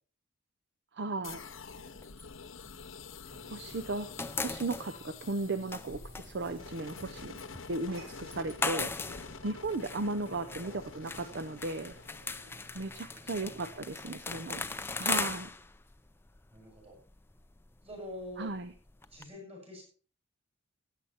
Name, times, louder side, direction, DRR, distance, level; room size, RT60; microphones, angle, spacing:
voice 1, 0.9-1.4 3.5-7.4 7.7-8.9 9.4-11.9 12.7-14.7 15.0-15.5 18.4-18.7, right 2 dB, 55° right, 11 dB, 0.6 m, -36 dB
sound 1, 1.2-13.0, left 5 dB, 70° left, 0.9 m, -48 dB
sound 2, 1.3-3.5 3.8-19.3, left 4 dB, 10° left, 0.5 m, -40 dB
sound 3, 3.2-13.9, right 1 dB, 70° right, 7.9 m, -55 dB
voice 2, 10.2-10.8 13.4-14.1 16.5-17.0 17.8-18.5 19.1-19.8, equal, 30° right, -1 dB, 7.4 m, -47 dB
15.0 x 9.4 x 4.3 m, 0.41 s
head